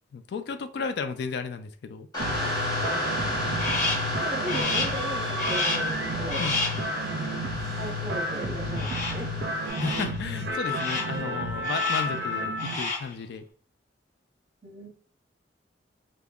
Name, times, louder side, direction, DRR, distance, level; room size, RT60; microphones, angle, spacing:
voice 1, 0.1-2.1 6.4-6.6 9.8-13.5, left 5 dB, 60° left, 9 dB, 0.3 m, -34 dB
sound 1, 2.1-9.7, equal, 20° left, 1.1 m, -32 dB
sound 2, 2.2-12.7, equal, 65° right, 0.4 m, -31 dB
voice 2, 2.8-3.5 4.2-6.5 7.8-9.3 14.6-14.9, equal, 30° right, 0 dB, 0.8 m, -37 dB
Crow, 3.6-4.1 4.5-5.0 5.4-6.0 6.3-6.9 8.8-9.3 9.7-10.2 10.6-11.2 11.6-12.2 12.5-13.1, left 2 dB, 45° left, 0.9 m, -30 dB
3.5 x 2.1 x 2.3 m, 0.41 s
head